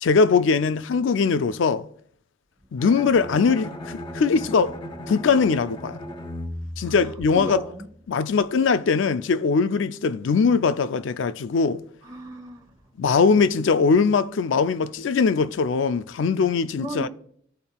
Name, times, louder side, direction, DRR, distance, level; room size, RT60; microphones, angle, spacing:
voice 1, 0.0-1.9 2.7-4.8 5.1-6.0 6.8-7.6 8.1-11.8 13.0-17.1, left 5 dB, 65° left, 0.4 m, -21 dB
Bowed string instrument, 2.8-7.8, left 1 dB, 25° left, 0.8 m, -37 dB
voice 2, 6.8-7.9 12.0-12.7 16.8-17.1, right 1 dB, 20° right, 1.2 m, -35 dB
15.0 x 5.3 x 2.3 m
head